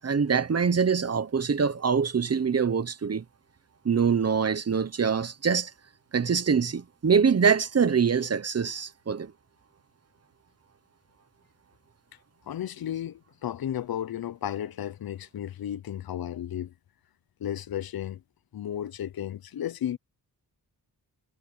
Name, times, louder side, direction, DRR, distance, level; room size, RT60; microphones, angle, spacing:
voice 1, 0.0-3.2 3.8-5.7 6.1-9.3, right 6 dB, 40° right, 1.0 m, -24 dB
voice 2, 12.5-16.7 17.4-18.2 18.5-20.0, left 10 dB, 65° left, 0.7 m, -33 dB
wide cardioid pair, 145°, 39 cm